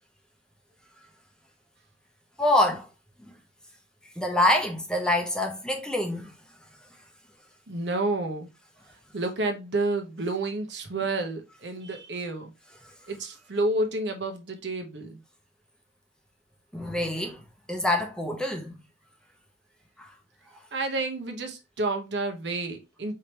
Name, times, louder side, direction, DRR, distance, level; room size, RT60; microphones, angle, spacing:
voice 1, 2.4-2.9 3.2-3.3 4.2-6.3 12.8-12.9 16.7-17.4 17.7-18.8 20.0-20.1, left 1 dB, 5° left, 0.8 m, -26 dB
voice 2, 7.7-8.5 9.1-12.5 13.1-15.2 20.7-23.1, right 2 dB, 70° right, 1.0 m, -30 dB
4.8 x 3.3 x 2.9 m
head